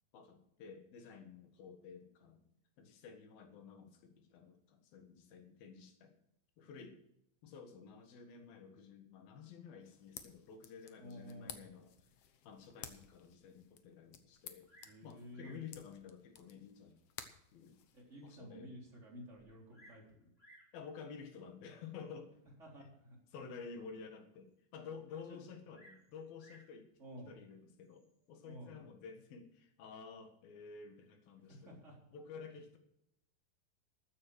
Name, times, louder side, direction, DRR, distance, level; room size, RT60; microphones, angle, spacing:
voice 1, 0.1-2.4 2.8-6.2 6.6-7.0 7.4-11.9 12.4-14.7 15.0-17.0 17.5-17.8 18.2-18.7 20.7-22.4 23.3-26.9 27.3-31.8 32.1-32.8, left 6 dB, 85° left, 6 dB, 3.4 m, -52 dB
sound 1, 9.8-18.4, left 9 dB, 70° left, 1.5 m, -55 dB
voice 2, 11.0-11.6 14.8-15.6 17.9-20.3 22.6-23.2 25.1-25.5 27.0-27.3 28.4-28.8 31.4-32.0 32.3-32.4, equal, 20° right, -3 dB, 4.0 m, -52 dB
Bird vocalization bird call bird song, 14.6-15.0 15.3-15.7 16.6-16.7 17.3-17.4 17.9-18.0 18.2-18.3 19.4-20.1 20.4-20.7 21.7-22.1 25.7-26.7 27.8-28.3, equal, 15° left, 3.9 m, -63 dB
14.0 x 8.8 x 6.4 m, 0.79 s
omnidirectional pair, 4.1 m